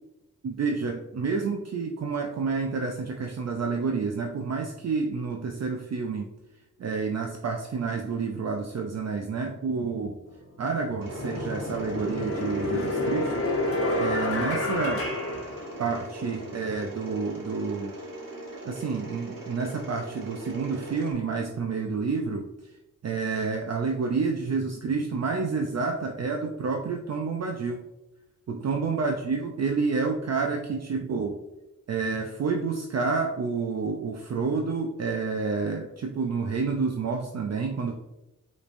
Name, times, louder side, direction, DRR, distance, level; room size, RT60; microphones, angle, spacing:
voice 1, 0.4-6.3 6.8-10.2 10.6-13.3 14.0-15.0 15.8-18.0 18.6-22.5 23.0-27.9 28.5-31.4 31.9-37.9, right 4 dB, 55° right, 3 dB, 0.4 m, -29 dB
sound 1, 10.3-10.4 11.0-16.2, left 1 dB, 45° left, 1.0 m, -29 dB
Mechanisms, 11.0-21.1, right 2 dB, 85° right, 1.2 m, -40 dB
5.1 x 3.2 x 2.5 m, 0.96 s
wide cardioid pair, 95°, 33 cm